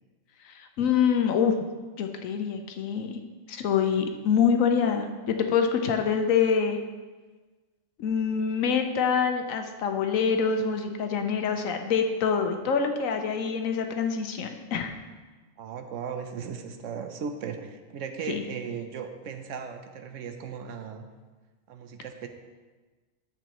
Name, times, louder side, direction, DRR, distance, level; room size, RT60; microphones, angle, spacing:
voice 1, 0.4-1.7 2.0-3.2 3.5-6.8 8.0-14.9 18.3-18.4, left 6 dB, 80° left, 5 dB, 1.1 m, -25 dB
voice 2, 15.6-21.1 21.7-22.3, right 6 dB, 70° right, 7 dB, 1.0 m, -37 dB
9.9 x 7.4 x 2.9 m, 1.3 s
omnidirectional pair, 1.4 m